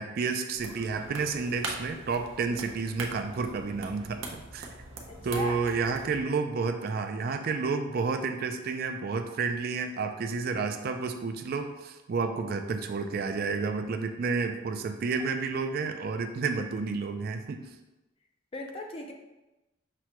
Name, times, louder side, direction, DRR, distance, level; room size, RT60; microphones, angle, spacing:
voice 1, 0.0-4.2 4.5-4.7 5.2-17.6, right 4 dB, 50° right, 6 dB, 0.3 m, -30 dB
sound 1, 0.5-6.2, right 2 dB, 80° right, 0.6 m, -42 dB
voice 2, 5.1-5.5 18.5-19.1, left 2 dB, 30° left, 2 dB, 0.4 m, -37 dB
6.0 x 2.2 x 2.9 m, 1.0 s
head